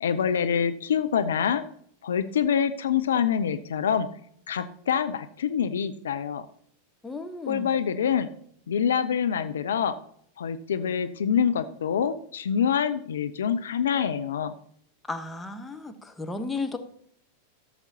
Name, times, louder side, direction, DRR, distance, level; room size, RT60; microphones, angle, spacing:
voice 1, 0.0-1.6 2.0-4.1 4.5-6.4 7.5-8.3 8.7-10.0 10.4-14.5, left 8 dB, 65° left, 11 dB, 0.5 m, -26 dB
voice 2, 7.0-7.8 15.1-16.8, left 3 dB, 10° left, 5 dB, 1.0 m, -34 dB
14.0 x 7.2 x 2.8 m, 0.64 s
figure-of-eight pair, 90°, 0 cm